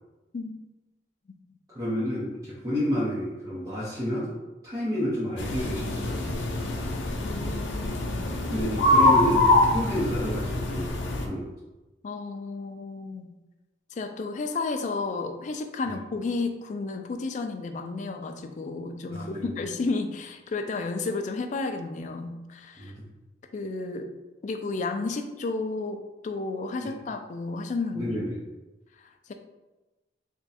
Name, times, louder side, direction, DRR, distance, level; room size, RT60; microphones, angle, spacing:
voice 1, 1.7-4.3 4.6-6.4 8.4-11.5 19.1-19.5 22.8-23.1 26.8-26.9 27.9-28.4, equal, 20° right, -10 dB, 0.8 m, -30 dB
sound 1, 5.4-11.3, left 2 dB, 90° left, 0.6 m, -24 dB
voice 2, 7.2-8.3 12.0-13.3 13.9-22.9 23.5-24.1 24.4-28.1 29.0-29.3, left 3 dB, 40° left, 6 dB, 0.3 m, -32 dB
3.5 x 2.2 x 4.1 m, 1.1 s
head